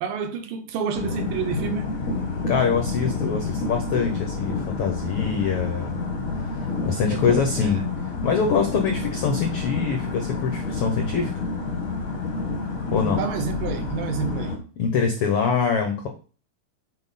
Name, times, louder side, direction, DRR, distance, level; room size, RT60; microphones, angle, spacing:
voice 1, 0.0-1.9 7.1-7.9 12.4-12.5 13.0-14.6, right 6 dB, 75° right, 8 dB, 2.6 m, -29 dB
sound 1, 0.9-14.6, left 3 dB, 60° left, 0.8 m, -29 dB
voice 2, 2.5-6.0 6.5-11.3 12.9-13.2 14.8-16.1, left 6 dB, 85° left, 4 dB, 1.2 m, -24 dB
7.7 x 4.5 x 4.1 m, 0.38 s
omnidirectional pair, 4.0 m